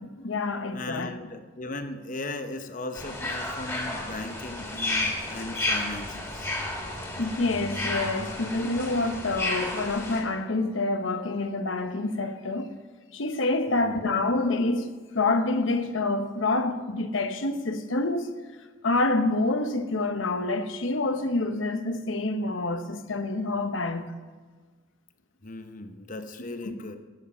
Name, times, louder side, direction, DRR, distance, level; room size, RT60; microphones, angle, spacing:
voice 1, 0.0-1.1 7.2-12.7 13.1-18.3 18.8-24.1 26.6-26.7, left 2 dB, 75° left, 1.0 m, -27 dB
voice 2, 0.7-6.6 13.7-14.1 25.4-27.0, left 2 dB, 40° left, 0.9 m, -37 dB
sound 1, 2.9-10.2, left 2 dB, 15° left, 2.2 m, -32 dB
13.0 x 8.7 x 5.5 m
head